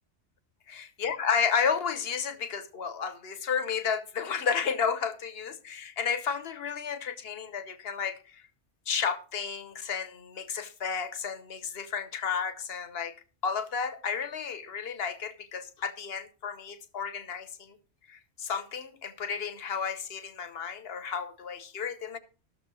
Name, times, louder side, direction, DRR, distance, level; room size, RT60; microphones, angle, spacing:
voice 1, 0.7-8.4 8.9-13.1 13.4-17.7 18.1-22.2, left 6 dB, 55° left, 10 dB, 1.2 m, -32 dB
13.0 x 4.9 x 6.2 m, 0.36 s
omnidirectional pair, 1.2 m